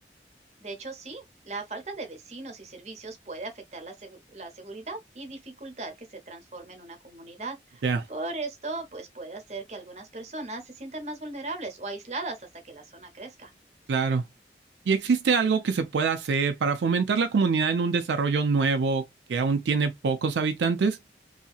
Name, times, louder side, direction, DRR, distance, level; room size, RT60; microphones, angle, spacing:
voice 1, 0.6-13.5, right 2 dB, 40° right, 0.8 m, -38 dB
voice 2, 13.9-14.2 14.9-19.0 19.3-21.0, right 5 dB, 85° right, 0.4 m, -24 dB
2.8 x 2.7 x 2.3 m
head